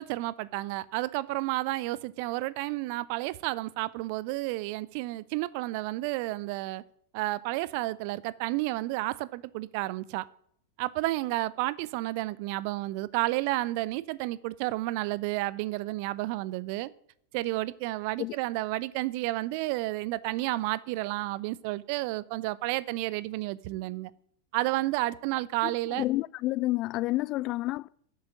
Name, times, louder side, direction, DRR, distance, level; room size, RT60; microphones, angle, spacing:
voice 1, 0.0-6.8 7.1-10.2 10.8-16.9 17.3-24.1 24.5-26.0, right 18 dB, 45° right, 0.8 m, -31 dB
voice 2, 25.6-27.9, left 18 dB, 40° left, 0.5 m, -30 dB
13.5 x 8.9 x 9.2 m
figure-of-eight pair, 90°, 0 cm